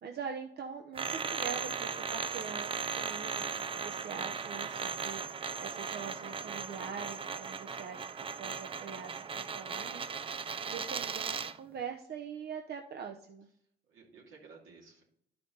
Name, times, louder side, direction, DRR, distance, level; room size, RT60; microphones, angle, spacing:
voice 1, 0.0-10.0 10.6-13.5, right 6 dB, 55° right, 3 dB, 0.9 m, -43 dB
sound 1, 0.9-11.6, right 5 dB, 25° right, 0.4 m, -37 dB
voice 2, 13.9-15.0, right 4 dB, 80° right, -1 dB, 2.5 m, -56 dB
11.5 x 5.8 x 3.9 m, 0.70 s
cardioid pair, 90°, 20 cm